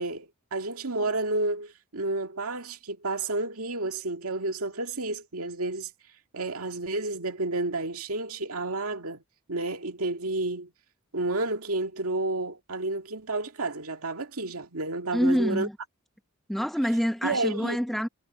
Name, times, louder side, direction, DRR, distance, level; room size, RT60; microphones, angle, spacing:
voice 1, 0.0-5.9 6.3-9.2 9.5-10.7 11.1-15.7 17.2-17.8, right 2 dB, 85° right, 2.2 m, -31 dB
voice 2, 15.1-15.7 16.5-18.1, equal, ahead, 1.2 m, -26 dB
head